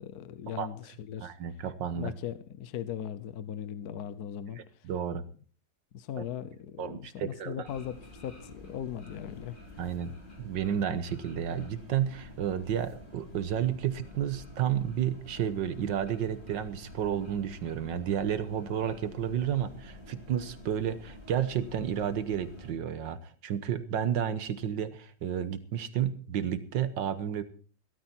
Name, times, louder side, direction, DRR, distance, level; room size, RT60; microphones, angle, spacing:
voice 1, 0.0-1.3 2.0-4.6 5.9-8.0 8.2-9.5, left 9 dB, 60° left, 14 dB, 1.2 m, -38 dB
voice 2, 1.2-2.1 4.6-5.2 6.2-6.3 6.8-7.7 9.8-10.1 10.4-27.4, right 9 dB, 75° right, 12 dB, 1.7 m, -31 dB
sound 1, 7.6-22.7, left 2 dB, 25° left, 3.5 m, -49 dB
16.0 x 13.0 x 4.4 m, 0.42 s
omnidirectional pair, 2.0 m